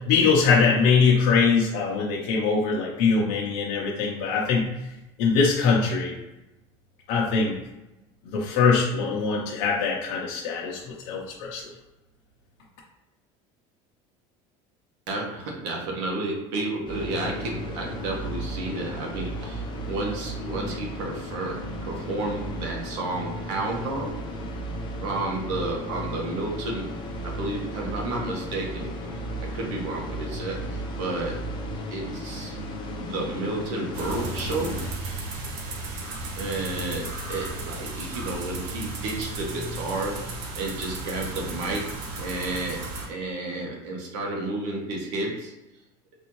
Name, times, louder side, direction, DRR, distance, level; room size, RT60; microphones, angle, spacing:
voice 1, 0.1-4.7 5.2-6.2 7.1-7.6 8.2-11.6, left 5 dB, 70° left, -3 dB, 0.8 m, -22 dB
voice 2, 15.1-24.2 25.0-26.9 27.2-29.2 29.5-31.4 31.9-32.5 33.0-34.9 36.4-40.3 40.6-45.5, right 2 dB, 85° right, -1 dB, 1.2 m, -31 dB
sound 1, 16.9-34.9, equal, 35° left, 0.7 m, -35 dB
sound 2, 33.9-43.1, right 2 dB, 70° right, 0.9 m, -34 dB
4.1 x 2.6 x 3.1 m, 0.96 s
cardioid pair, 145°, 14 cm